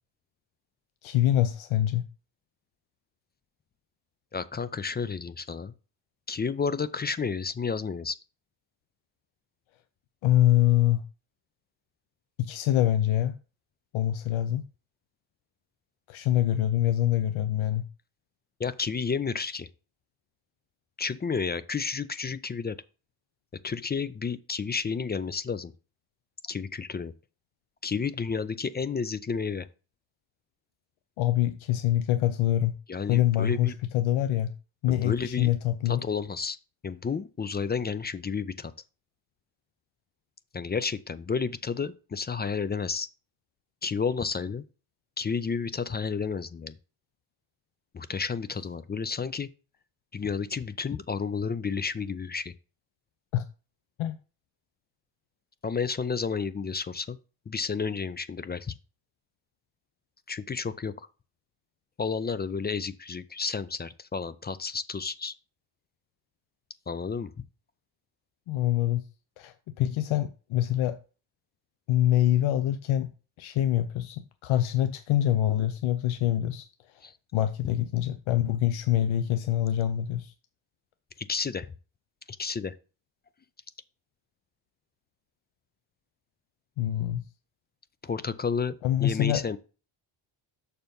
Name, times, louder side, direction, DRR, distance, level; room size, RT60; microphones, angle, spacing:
voice 1, 1.0-2.0 10.2-11.0 12.4-13.4 13.9-14.6 16.1-17.9 31.2-32.7 33.1-34.5 34.8-36.0 53.3-53.4 54.0-54.2 68.5-69.1 69.4-71.0 71.9-73.1 73.4-76.7 76.9-77.0 77.3-80.3 86.8-87.2 88.8-89.4, left 12 dB, 90° left, 0.7 m, -25 dB
voice 2, 4.3-5.7 6.3-8.2 18.6-19.7 21.0-22.8 23.6-25.7 26.4-27.1 27.8-29.7 32.9-33.7 34.9-35.5 35.9-36.6 36.8-38.7 40.5-43.1 43.8-44.6 45.2-46.8 47.9-49.5 50.1-52.5 55.6-57.2 57.5-58.7 60.3-60.9 62.0-65.3 66.9-67.3 77.0-77.1 81.2-81.7 82.3-82.8 88.0-89.6, left 5 dB, 25° left, 0.4 m, -31 dB
6.6 x 4.6 x 5.2 m
cardioid pair, 120°, 47 cm